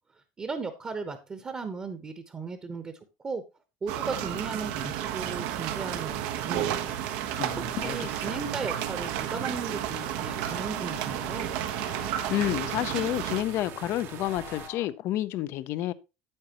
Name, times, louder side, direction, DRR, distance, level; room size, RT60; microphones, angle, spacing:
voice 1, 0.4-2.9 3.2-3.4 3.8-6.9 7.7-11.5, right 4 dB, 20° right, 1.0 m, -36 dB
sound 1, 3.9-13.4, right 11 dB, 75° right, 1.1 m, -32 dB
sound 2, 5.1-14.7, right 10 dB, 50° right, 1.1 m, -43 dB
sound 3, 6.6-14.9, left 8 dB, 40° left, 1.0 m, -49 dB
voice 2, 7.4-8.4 12.3-15.9, left 14 dB, 55° left, 0.6 m, -30 dB
8.9 x 8.6 x 2.9 m
cardioid pair, 135°, 5 cm